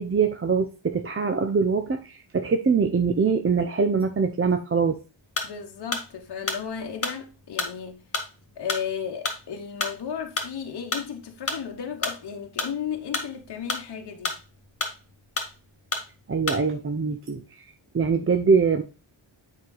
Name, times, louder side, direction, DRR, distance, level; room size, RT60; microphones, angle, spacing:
voice 1, 0.0-5.0 16.3-17.4 17.9-18.8, right 5 dB, 25° right, 0.6 m, -23 dB
sound 1, 5.3-5.6 5.9-11.1 11.5-12.8 13.0-14.6 14.8-15.6 15.9-16.1 16.5-16.7, left 3 dB, 30° left, 1.7 m, -30 dB
voice 2, 5.4-8.0 8.6-14.4, left 7 dB, 55° left, 1.1 m, -34 dB
7.1 x 4.9 x 3.9 m
cardioid pair, 95°, 48 cm